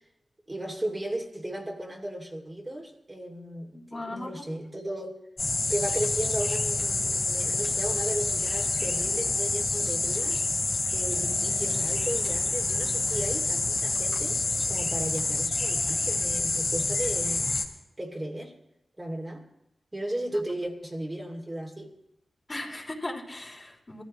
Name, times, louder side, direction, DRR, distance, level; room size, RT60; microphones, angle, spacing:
voice 1, 0.5-5.2 5.7-10.4 10.9-14.4 14.7-17.5 18.0-18.5 19.0-19.5 19.9-21.9, right 1 dB, 30° right, -1 dB, 2.7 m, -35 dB
voice 2, 3.7-4.4 22.5-24.0, left 2 dB, 35° left, -2 dB, 3.5 m, -37 dB
sound 1, 5.4-17.6, left 3 dB, 60° left, 2.7 m, -27 dB
22.5 x 14.5 x 3.2 m, 0.84 s
cardioid pair, 40°, 0 cm